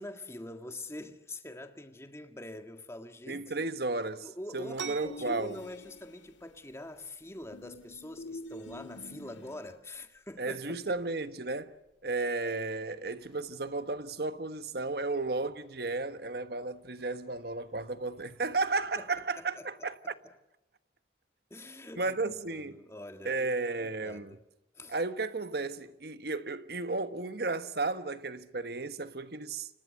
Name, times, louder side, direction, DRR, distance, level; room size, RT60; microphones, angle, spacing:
voice 1, 0.0-3.7 4.2-11.0 19.0-19.1 19.6-20.3 21.5-24.4 24.7-25.0, left 1 dB, 15° left, 1.8 m, -45 dB
voice 2, 3.3-5.5 10.4-11.7 12.0-20.1 22.0-22.8 23.2-24.4 24.9-29.7, right 3 dB, 55° right, 1.2 m, -34 dB
sound 1, 4.7-14.1, right 6 dB, 85° right, 1.7 m, -51 dB
sound 2, 5.0-6.3 7.5-9.7, left 2 dB, 80° left, 2.1 m, -46 dB
sound 3, 12.9-19.3, equal, 5° right, 7.5 m, -66 dB
30.0 x 26.5 x 6.5 m
head